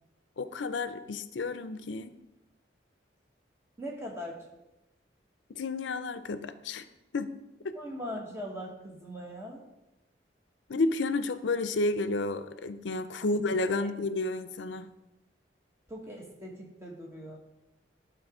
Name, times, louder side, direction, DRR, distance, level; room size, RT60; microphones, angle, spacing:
voice 1, 0.4-2.2 5.5-6.9 7.1-7.3 7.6-7.7 10.7-14.9, left 2 dB, 90° left, 12 dB, 0.5 m, -31 dB
voice 2, 3.8-4.4 7.7-9.6 13.2-13.4 13.8-13.9 15.9-17.4, equal, 15° right, -1 dB, 1.2 m, -40 dB
11.5 x 4.0 x 4.9 m, 0.97 s
head